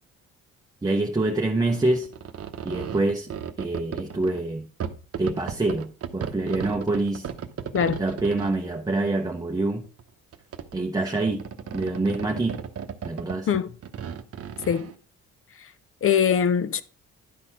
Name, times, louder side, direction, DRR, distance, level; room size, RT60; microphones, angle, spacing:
voice 1, 0.8-2.1 2.6-3.3 3.6-4.7 5.2-7.3 8.0-9.8 10.7-11.4 11.7-12.6 13.0-13.5, right 2 dB, 15° right, 0.8 m, -26 dB
sound 1, 1.7-4.4 4.8-8.7 9.6-10.0 10.3-10.8 11.1-14.9, right 8 dB, 50° right, 0.9 m, -35 dB
voice 2, 16.0-16.8, left 8 dB, 45° left, 0.6 m, -22 dB
11.0 x 4.1 x 4.4 m
cardioid pair, 90°, 30 cm